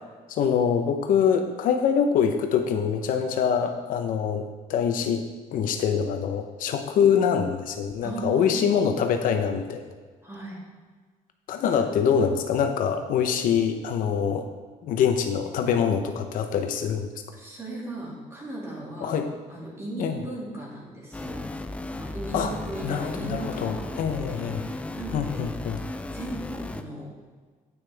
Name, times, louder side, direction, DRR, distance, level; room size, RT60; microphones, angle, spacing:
voice 1, 0.3-5.2 5.5-9.8 11.5-14.5 14.8-17.1 19.0-19.3 20.0-20.2 22.3-22.5 22.8-24.6 25.1-25.8, left 7 dB, 80° left, 6 dB, 0.9 m, -24 dB
voice 2, 8.0-8.5 10.2-10.6 11.7-12.1 17.3-19.2 19.5-21.5 22.0-25.5 26.1-27.1, right 2 dB, 20° right, -3 dB, 2.4 m, -37 dB
sound 1, 21.1-26.8, left 2 dB, 10° left, 0.4 m, -35 dB
9.8 x 8.9 x 3.5 m, 1.5 s
cardioid pair, 160°, 14 cm